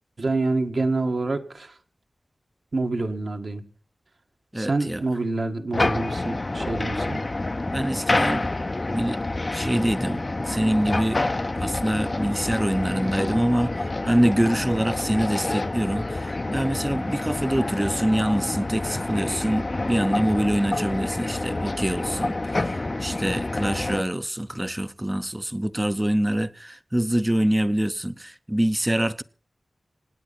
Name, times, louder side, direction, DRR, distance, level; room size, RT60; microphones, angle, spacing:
voice 1, 0.2-1.7 2.7-3.6 4.5-7.2, right 3 dB, 55° right, 1.7 m, -27 dB
voice 2, 4.5-5.0 7.7-8.5 8.9-9.2 9.5-11.2 11.6-29.2, right 1 dB, 15° right, 0.7 m, -25 dB
sound 1, 5.7-24.0, left 2 dB, 35° left, 0.6 m, -28 dB
26.5 x 9.2 x 4.2 m
wide cardioid pair, 75°, 0 cm